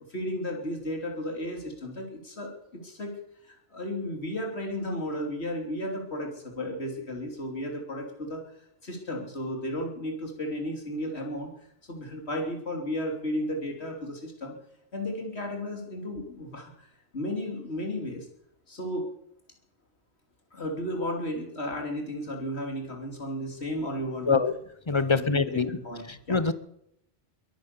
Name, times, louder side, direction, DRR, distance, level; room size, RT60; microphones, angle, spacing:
voice 1, 0.1-3.1 3.4-8.4 8.8-11.5 11.9-14.5 14.9-16.9 17.1-18.3 18.7-19.1 20.5-24.4 24.9-26.4, left 1 dB, 85° left, 2 dB, 3.5 m, -34 dB
voice 2, 24.9-25.7 26.3-26.5, left 4 dB, 30° left, 14 dB, 0.8 m, -24 dB
22.0 x 9.6 x 6.8 m, 0.76 s
omnidirectional pair, 1.1 m